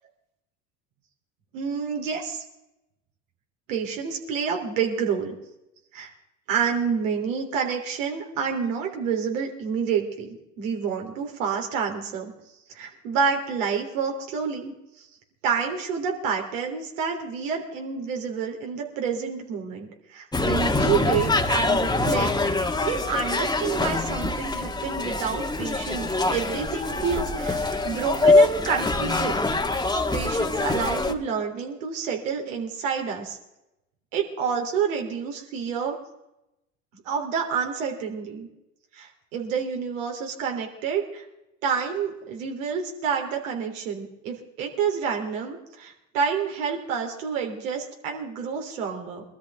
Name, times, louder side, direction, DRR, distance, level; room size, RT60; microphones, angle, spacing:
voice 1, 1.5-2.4 3.7-5.3 5.9-6.1 6.5-12.3 12.7-15.1 15.4-29.5 30.1-33.4 34.1-36.0 37.0-38.5 38.9-41.2 41.6-49.2, right 6 dB, 75° right, 2 dB, 3.4 m, -28 dB
sound 1, 20.3-31.1, left 2 dB, 10° left, 1.5 m, -24 dB
23.5 x 13.0 x 3.6 m, 0.89 s
hypercardioid pair, 75°, 39 cm